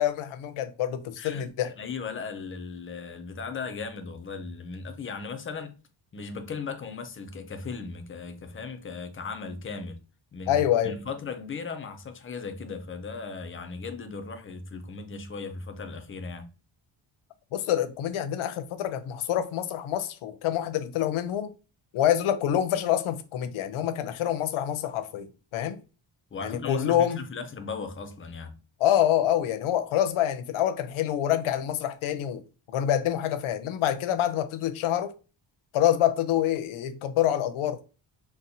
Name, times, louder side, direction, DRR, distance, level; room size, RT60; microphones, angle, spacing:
voice 1, 0.0-1.7 10.5-10.9 17.5-21.5 21.9-25.8 26.4-27.2 28.8-32.4 32.7-35.1 35.7-37.8, left 11 dB, 90° left, 0.6 m, -26 dB
voice 2, 1.2-5.7 6.1-10.0 10.3-16.5 26.3-28.6, left 4 dB, 30° left, 0.3 m, -37 dB
4.1 x 2.0 x 2.7 m
wide cardioid pair, 170°, 48 cm